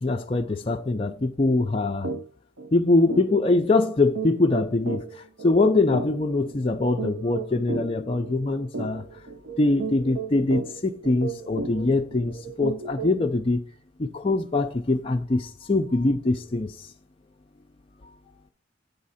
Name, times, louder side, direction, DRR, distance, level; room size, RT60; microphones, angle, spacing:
voice 1, 0.0-2.1 2.7-9.1 9.6-13.6 14.0-16.9, left 2 dB, 30° left, 0.5 m, -23 dB
sound 1, 2.0-2.2 2.6-2.7 3.1-13.3, right 4 dB, 90° right, 0.7 m, -35 dB
8.3 x 3.8 x 5.6 m
head